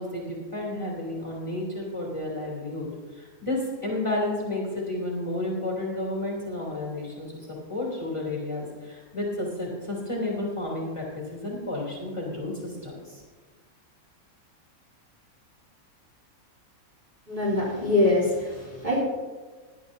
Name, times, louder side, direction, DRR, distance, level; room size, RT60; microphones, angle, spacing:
voice 1, 0.0-2.9 3.1-13.2, left 1 dB, 20° left, -4 dB, 3.1 m, -31 dB
voice 2, 17.3-19.0, left 2 dB, 30° right, -6 dB, 3.6 m, -24 dB
18.0 x 11.5 x 2.7 m, 1.4 s
omnidirectional pair, 1.5 m